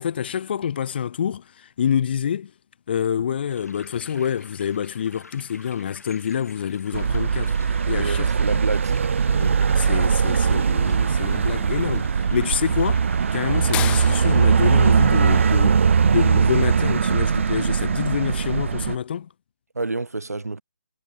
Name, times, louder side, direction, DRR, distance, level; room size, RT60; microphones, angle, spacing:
voice 1, 0.0-2.5 2.9-8.3 9.3-13.0 13.3-19.3, left 8 dB, 40° left, 1.5 m, -27 dB
sound 1, 3.5-15.5, left 3 dB, 80° left, 5.4 m, -47 dB
sound 2, 5.3-17.2, left 15 dB, 15° left, 2.2 m, -41 dB
sound 3, 6.9-19.0, right 6 dB, 55° right, 0.6 m, -20 dB
voice 2, 7.9-9.0 19.7-20.6, right 3 dB, 85° right, 2.0 m, -29 dB
figure-of-eight pair, 150°, 8 cm